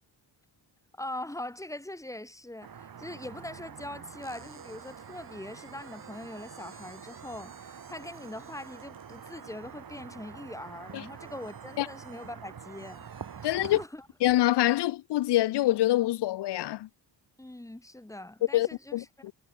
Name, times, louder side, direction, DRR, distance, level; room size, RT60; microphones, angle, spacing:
voice 1, 1.0-13.0 13.4-14.1 17.4-19.0, left 1 dB, 5° left, 2.6 m, -42 dB
sound 1, 2.6-13.9, right 7 dB, 50° right, 5.6 m, -46 dB
sound 2, 4.2-14.2, right 4 dB, 30° right, 7.0 m, -58 dB
voice 2, 13.4-13.8 14.2-16.9 18.5-19.3, left 15 dB, 65° left, 0.6 m, -25 dB
wide cardioid pair, 150°, 43 cm